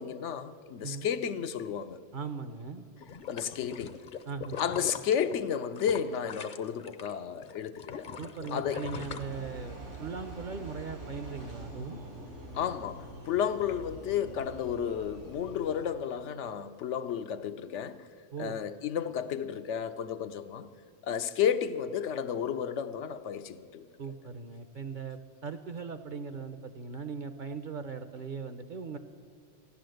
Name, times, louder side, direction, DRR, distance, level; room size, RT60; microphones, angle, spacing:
voice 1, 0.0-2.0 3.3-4.0 4.6-7.9 8.5-8.8 12.5-18.1 18.4-20.7 21.0-23.9, left 8 dB, 75° left, 1.0 m, -32 dB
voice 2, 2.1-2.9 4.3-4.6 8.2-12.0 18.3-18.6 24.0-29.0, right 5 dB, 50° right, 0.8 m, -39 dB
sound 1, 3.0-7.1 7.4-9.9 10.4-10.5, left 7 dB, 50° left, 0.7 m, -42 dB
Engine, 8.9-15.9, right 1 dB, 85° right, 5.2 m, -45 dB
15.5 x 11.0 x 7.8 m
omnidirectional pair, 1.2 m